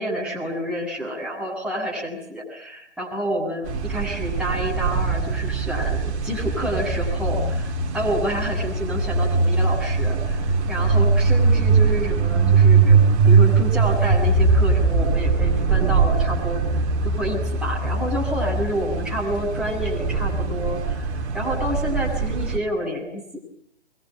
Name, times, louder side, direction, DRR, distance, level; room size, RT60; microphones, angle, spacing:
voice 1, 0.0-6.0 6.2-16.6 17.0-23.4, equal, 5° right, -5 dB, 7.9 m, -29 dB
sound 1, 3.7-22.6, right 4 dB, 25° right, 2.9 m, -21 dB
25.0 x 23.0 x 9.3 m, 0.68 s
figure-of-eight pair, 135°, 34 cm